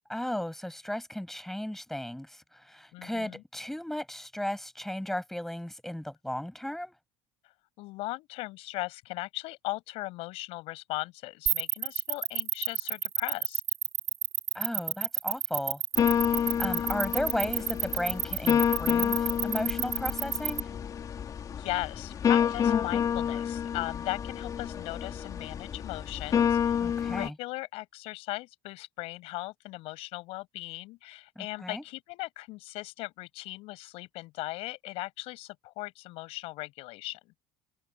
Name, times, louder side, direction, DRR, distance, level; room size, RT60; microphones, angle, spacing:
voice 1, 0.1-6.9 14.5-15.8 16.6-20.7 26.8-27.3 31.4-31.8, left 1 dB, 5° left, 7.7 m, -35 dB
voice 2, 2.9-3.4 7.8-13.6 21.5-26.6 27.0-37.3, left 20 dB, 65° left, 7.8 m, -38 dB
sound 1, 11.5-20.6, right 11 dB, 30° right, 7.2 m, -29 dB
sound 2, 16.0-27.3, left 8 dB, 35° left, 3.3 m, -29 dB
supercardioid pair, 125°, 11 cm